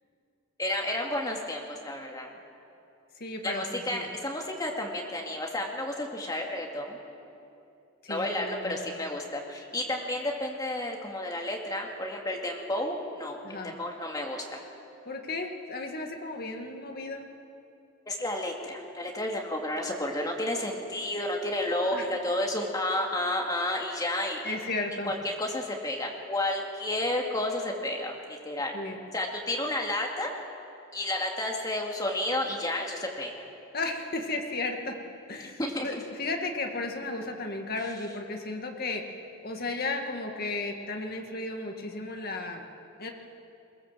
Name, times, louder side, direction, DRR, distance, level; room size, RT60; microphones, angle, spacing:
voice 1, 0.6-2.3 3.4-7.0 8.1-14.6 18.1-24.6 25.0-28.1 28.4-28.8 29.1-30.3 30.9-33.4 35.6-35.9, left 1 dB, 20° left, 0 dB, 2.3 m, -31 dB
voice 2, 3.2-4.1 8.0-9.0 13.4-13.7 15.1-17.3 21.9-22.1 24.4-25.1 28.7-29.0 33.7-35.0 35.3-39.1 39.4-42.7 43.0-43.1, left 2 dB, 45° left, 3 dB, 1.9 m, -34 dB
22.5 x 18.0 x 7.4 m, 2.7 s
head